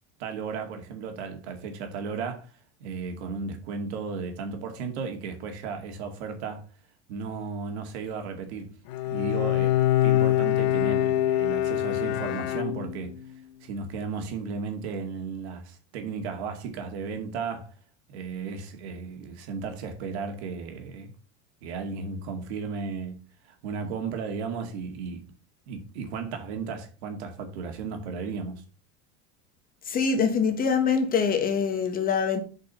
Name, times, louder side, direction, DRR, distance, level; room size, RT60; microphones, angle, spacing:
voice 1, 0.2-6.7 7.1-8.7 9.1-13.1 13.6-17.7 18.1-21.1 21.6-25.2 25.7-28.6, right 5 dB, 80° right, 2.3 m, -35 dB
Bowed string instrument, 8.9-13.3, left 13 dB, 65° left, 1.0 m, -24 dB
voice 2, 29.9-32.4, left 6 dB, 25° left, 1.5 m, -24 dB
7.3 x 5.3 x 5.6 m
supercardioid pair, 155°, 32 cm